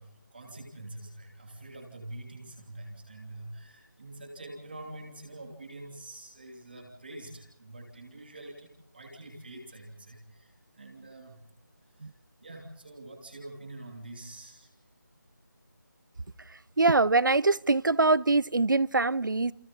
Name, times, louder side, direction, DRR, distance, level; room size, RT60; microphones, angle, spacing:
voice 1, 0.0-11.4 11.9-12.1 12.4-14.7, right 2 dB, 30° right, 2.9 m, -45 dB
voice 2, 16.8-19.5, right 3 dB, 85° right, 0.7 m, -23 dB
28.5 x 28.5 x 3.7 m
figure-of-eight pair, 175°, 10 cm